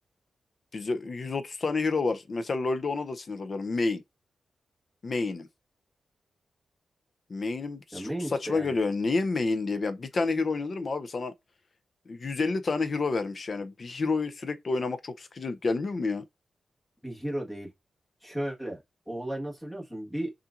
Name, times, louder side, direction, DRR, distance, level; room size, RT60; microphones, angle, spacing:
voice 1, 0.7-4.0 5.0-5.5 7.3-8.1 8.4-11.3 12.1-16.2, left 3 dB, 40° left, 0.5 m, -29 dB
voice 2, 7.9-8.7 17.0-17.7 18.2-20.3, right 1 dB, ahead, 1.4 m, -34 dB
5.5 x 2.5 x 2.5 m
wide cardioid pair, 135°, 0 cm